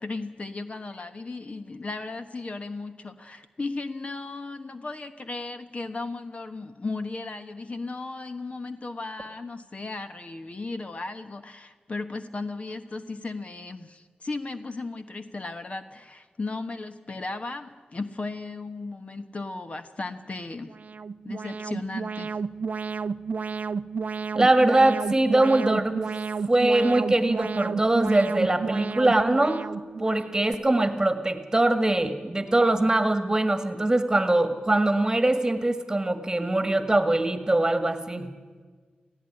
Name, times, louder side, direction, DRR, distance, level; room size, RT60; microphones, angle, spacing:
voice 1, 0.0-20.7 21.2-22.4, left 3 dB, 45° left, 9 dB, 1.2 m, -36 dB
Alarm, 20.7-30.5, right 5 dB, 55° right, 0.5 m, -32 dB
voice 2, 24.3-26.0 26.5-29.6 30.0-38.3, right 2 dB, 20° right, 9 dB, 1.8 m, -22 dB
17.0 x 15.5 x 10.0 m, 1.5 s
cardioid pair, 65°, 3 cm